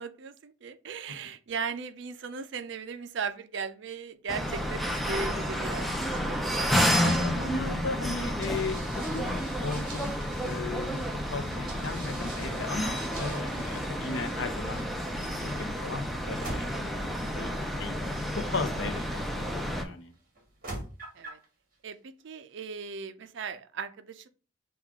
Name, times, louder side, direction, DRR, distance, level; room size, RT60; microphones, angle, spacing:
voice 1, 0.0-7.2 13.5-14.0 19.1-19.2 21.2-21.4 21.8-24.3, right 5 dB, 60° right, 10 dB, 0.4 m, -38 dB
sound 1, 4.3-19.8, equal, ahead, 0.4 m, -31 dB
voice 2, 7.0-8.8 9.1-10.2 10.4-11.0 11.3-14.9 15.2-17.1 17.3-20.1, left 3 dB, 65° left, 7 dB, 0.6 m, -36 dB
sound 2, 8.4-19.7 20.3-21.5, right 2 dB, 45° right, 1.4 m, -46 dB
6.1 x 2.3 x 3.6 m, 0.37 s
head